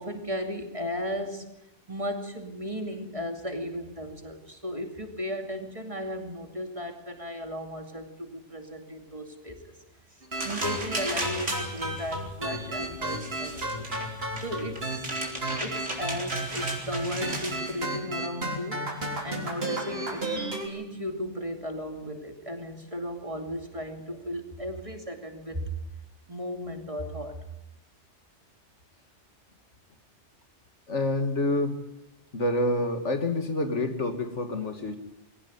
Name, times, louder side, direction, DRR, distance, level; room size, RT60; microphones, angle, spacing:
voice 1, 0.0-1.5 1.9-9.8 10.4-13.9 14.4-18.9 19.2-20.3 20.6-25.7 26.3-27.4, equal, 30° right, 5 dB, 2.7 m, -35 dB
sound 1, 10.2-20.7, right 1 dB, 55° right, 4.0 m, -32 dB
sound 2, 10.3-17.8, right 1 dB, 85° right, 4.5 m, -36 dB
voice 2, 30.9-31.8 32.3-35.0, left 2 dB, 80° left, 7 dB, 2.4 m, -27 dB
21.5 x 18.0 x 9.5 m, 0.91 s
omnidirectional pair, 1.2 m